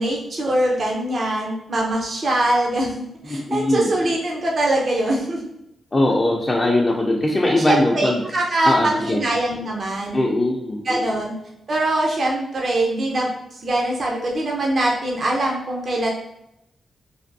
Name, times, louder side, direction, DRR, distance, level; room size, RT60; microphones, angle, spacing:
voice 1, 0.0-5.5 6.0-6.2 7.5-10.3 10.8-11.3 11.7-13.3 13.6-16.1, right 1 dB, 55° right, -1 dB, 0.5 m, -22 dB
voice 2, 3.3-3.9 5.9-8.2 8.6-9.2 10.1-11.0, left 1 dB, 35° left, -2 dB, 0.4 m, -20 dB
3.3 x 2.2 x 2.6 m, 0.82 s
cardioid pair, 60°, 0 cm